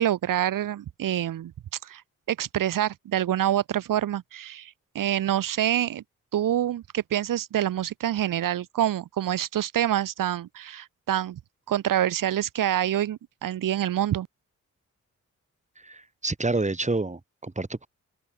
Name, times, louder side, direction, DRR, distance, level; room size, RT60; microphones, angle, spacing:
voice 1, 0.0-1.5 1.8-2.0 2.3-6.0 6.3-11.4 11.7-14.3, right 11 dB, 85° right, 4.7 m, -26 dB
voice 2, 15.8-17.9, right 2 dB, 20° right, 7.5 m, -28 dB
open air
cardioid pair, 80°, 32 cm